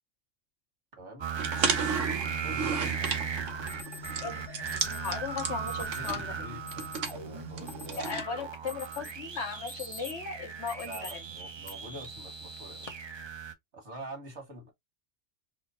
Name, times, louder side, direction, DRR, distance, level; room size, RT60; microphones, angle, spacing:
voice 1, 1.0-1.3 2.4-3.1 5.8-7.9 8.2-8.5 8.9-9.1 10.8-12.9 13.7-14.7, right 1 dB, 70° right, 2.1 m, -46 dB
sound 1, 1.2-13.5, right 6 dB, 40° right, 0.4 m, -37 dB
sound 2, 1.4-8.2, right 5 dB, 90° right, 1.3 m, -35 dB
Alarm, 3.0-3.1 3.7-4.1 4.7-5.2 5.7-6.1 6.7-7.1 7.5-8.3 8.7-9.2 9.5-10.2 10.7-11.1 11.6-11.7 12.5-12.9, left 2 dB, 35° left, 0.7 m, -46 dB
voice 2, 4.1-6.3 8.0-11.2, left 5 dB, 65° left, 1.3 m, -37 dB
4.3 x 2.0 x 4.2 m
omnidirectional pair, 1.2 m